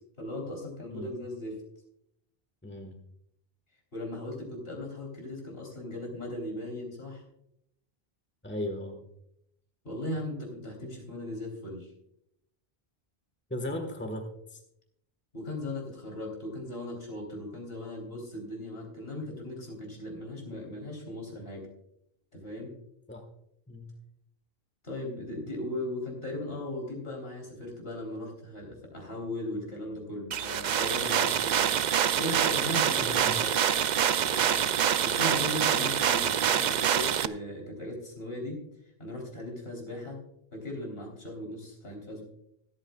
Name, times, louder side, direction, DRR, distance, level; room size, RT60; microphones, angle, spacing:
voice 1, 0.2-1.6 3.9-7.2 9.8-11.9 15.3-21.7 22.3-22.7 24.8-33.6 34.1-38.6 39.0-40.2 40.5-42.2, left 1 dB, 70° left, 0 dB, 3.9 m, -38 dB
voice 2, 2.6-3.0 8.4-9.0 13.5-14.6 23.1-23.2 23.7-23.9 32.8-33.4, left 1 dB, 10° left, 4 dB, 1.4 m, -37 dB
sound 1, 30.3-37.3, right 9 dB, 55° right, 0.6 m, -26 dB
25.0 x 9.0 x 2.4 m, 0.76 s
omnidirectional pair, 1.0 m